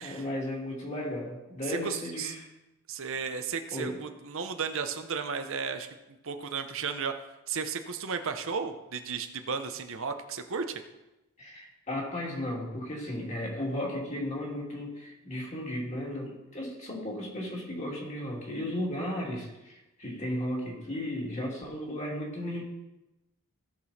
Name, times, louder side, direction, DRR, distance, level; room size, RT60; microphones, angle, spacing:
voice 1, 0.0-2.5 3.7-4.0 11.4-22.6, left 1 dB, 30° left, -2 dB, 2.6 m, -35 dB
voice 2, 1.6-2.3 2.9-5.9 6.2-7.1 7.5-10.8, right 5 dB, 60° right, 7 dB, 0.8 m, -34 dB
16.5 x 6.3 x 4.2 m, 0.98 s
head